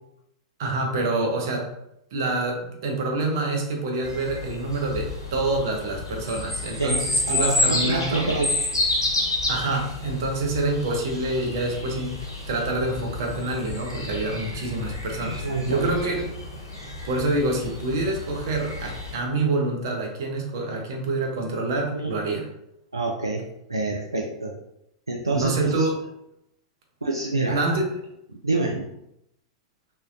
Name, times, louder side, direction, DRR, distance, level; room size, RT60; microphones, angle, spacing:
voice 1, 0.6-1.7 2.1-8.3 9.5-16.2 17.0-22.5 25.3-26.0 27.5-27.8, right 2 dB, 55° right, 1 dB, 0.7 m, -27 dB
sound 1, 4.0-19.1, left 2 dB, 70° left, 1.0 m, -30 dB
voice 2, 6.8-8.5 15.3-16.1 21.9-22.1 22.9-24.5 25.1-25.9 27.0-27.6 28.4-28.9, right 2 dB, 85° right, -1 dB, 0.3 m, -27 dB
3.6 x 2.1 x 2.6 m, 0.80 s
figure-of-eight pair, 95°, 2 cm